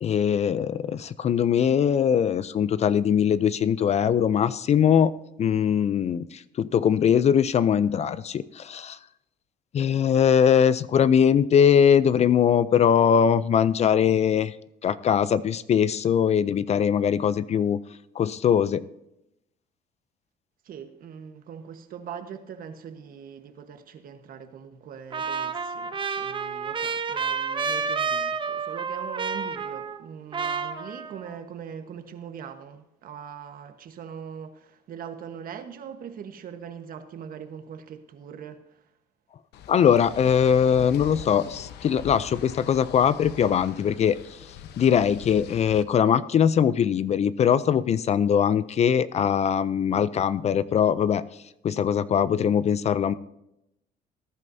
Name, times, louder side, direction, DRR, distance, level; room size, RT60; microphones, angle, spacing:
voice 1, 0.0-5.1 5.4-9.0 9.7-14.5 14.8-17.8 18.2-18.8 39.7-44.2 44.8-51.2 51.6-53.1, left 8 dB, 40° left, 0.4 m, -21 dB
voice 2, 20.6-38.9, right 7 dB, 55° right, 1.3 m, -41 dB
Trumpet, 25.1-30.1 30.3-31.3, right 5 dB, 30° right, 0.9 m, -30 dB
sound 1, 39.5-45.8, left 9 dB, 80° left, 0.8 m, -42 dB
18.5 x 11.0 x 2.7 m
cardioid pair, 110°, 17 cm